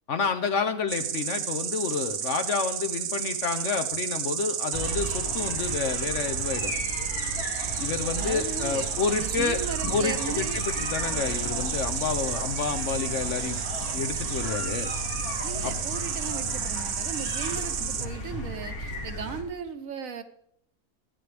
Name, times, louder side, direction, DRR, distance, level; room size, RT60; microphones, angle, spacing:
voice 1, 0.1-6.7 7.8-9.6 9.9-13.6 13.9-14.9 15.6-15.7, left 5 dB, 55° left, 1.1 m, -29 dB
Insect, 0.9-18.1, right 9 dB, 85° right, 1.3 m, -32 dB
sound 1, 4.7-19.4, left 1 dB, 75° left, 3.0 m, -35 dB
voice 2, 8.2-8.9 9.2-10.6 15.4-20.2, right 6 dB, 65° right, 1.3 m, -37 dB
24.5 x 9.6 x 3.4 m
omnidirectional pair, 1.6 m